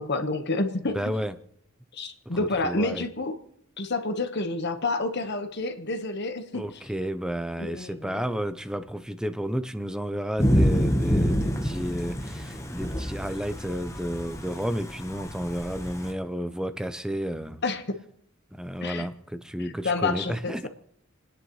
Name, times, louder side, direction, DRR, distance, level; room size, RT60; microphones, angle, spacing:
voice 1, 0.0-1.0 1.9-3.3 3.8-6.6 7.6-8.2 17.6-18.0 18.8-19.0 19.8-20.7, left 3 dB, 55° left, 1.3 m, -29 dB
voice 2, 0.9-1.3 2.3-3.1 6.5-17.6 18.5-20.7, equal, 5° right, 0.6 m, -32 dB
Thunder / Rain, 10.4-16.1, equal, 15° left, 1.1 m, -27 dB
30.0 x 10.0 x 3.1 m
head